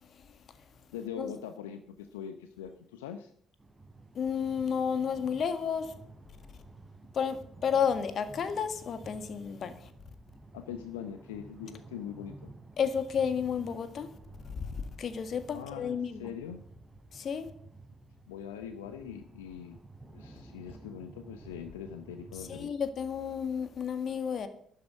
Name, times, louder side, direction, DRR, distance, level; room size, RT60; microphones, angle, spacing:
voice 1, 0.0-0.8 1.2-1.3 4.1-5.9 7.1-9.9 12.8-14.1 14.4-16.3 17.1-17.5 22.4-24.5, left 7 dB, 50° left, 1.8 m, -32 dB
voice 2, 0.9-3.3 10.5-12.5 15.5-16.6 18.3-19.8 20.1-22.7, left 8 dB, 80° left, 0.8 m, -42 dB
sound 1, 3.6-22.6, right 2 dB, 15° right, 3.2 m, -52 dB
12.0 x 9.5 x 8.0 m
figure-of-eight pair, 45°, 0 cm